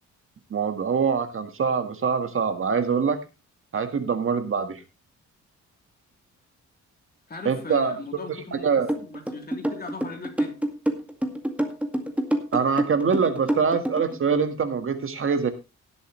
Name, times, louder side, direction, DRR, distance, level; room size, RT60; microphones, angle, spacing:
voice 1, 0.5-3.2 3.7-4.8 7.4-7.9 8.5-8.9 12.5-15.5, right 6 dB, 45° right, 8 dB, 1.7 m, -24 dB
voice 2, 7.3-10.6, left 4 dB, 30° left, 3 dB, 3.4 m, -39 dB
sound 1, 8.9-14.2, right 1 dB, 5° right, 2.1 m, -27 dB
18.0 x 8.2 x 3.2 m, 0.26 s
cardioid pair, 120°, 30 cm